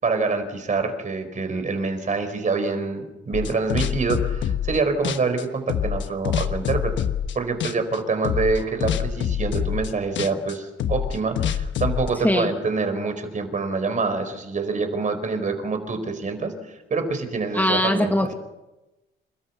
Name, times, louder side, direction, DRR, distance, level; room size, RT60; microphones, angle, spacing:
voice 1, 0.0-6.9 7.3-18.1, right 4 dB, 40° right, 8 dB, 4.4 m, -26 dB
sound 1, 3.3-4.8 5.0-7.4 7.6-8.0 8.2-12.1, left 9 dB, 70° left, 1.2 m, -26 dB
voice 2, 17.5-18.3, left 1 dB, 10° left, 4 dB, 1.8 m, -21 dB
29.0 x 13.5 x 6.9 m, 1.0 s
cardioid pair, 90°, 20 cm